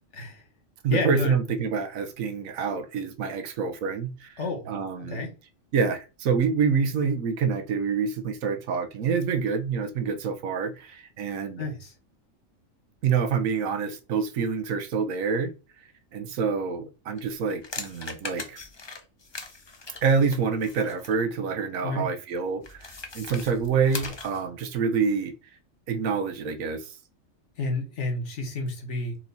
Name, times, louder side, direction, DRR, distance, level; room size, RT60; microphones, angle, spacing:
voice 1, 0.1-0.5 0.9-1.4 4.4-4.7 5.0-5.3 11.6-11.9 21.8-22.1 27.6-29.2, left 2 dB, 60° left, 1.4 m, -30 dB
voice 2, 0.8-4.3 4.7-5.2 5.7-11.6 13.0-15.5 16.1-18.6 20.0-25.3 25.9-26.9, right 5 dB, 85° right, 1.2 m, -27 dB
sound 1, 17.2-21.2 22.6-24.5, left 3 dB, 35° left, 0.4 m, -40 dB
4.5 x 2.9 x 4.0 m
omnidirectional pair, 1.4 m